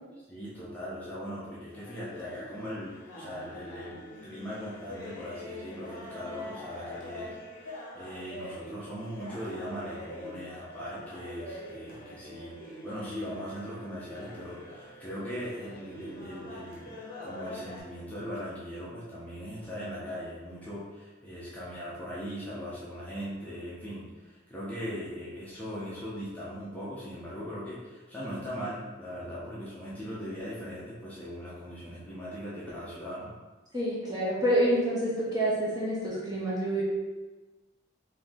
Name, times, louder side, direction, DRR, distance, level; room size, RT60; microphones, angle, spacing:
voice 1, 0.3-17.0 17.2-33.3, equal, 10° left, -9 dB, 0.9 m, -39 dB
sound 1, 1.7-17.8, left 1 dB, 45° left, 1.1 m, -44 dB
voice 2, 33.7-36.8, right 1 dB, 20° right, -7 dB, 1.0 m, -27 dB
4.6 x 3.0 x 3.7 m, 1.2 s
head